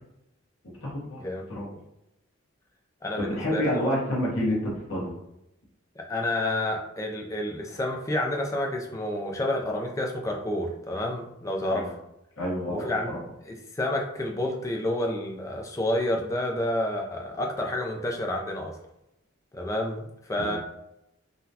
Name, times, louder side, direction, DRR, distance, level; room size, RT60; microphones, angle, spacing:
voice 1, 0.8-1.8 3.2-5.1 11.7-11.9 12.4-13.2 20.4-20.6, equal, 80° left, -4 dB, 1.0 m, -29 dB
voice 2, 3.0-4.0 6.0-12.0 12.7-13.1 13.5-18.8 19.5-20.6, left 1 dB, 15° left, 1 dB, 0.3 m, -29 dB
3.8 x 2.2 x 2.7 m, 0.85 s
head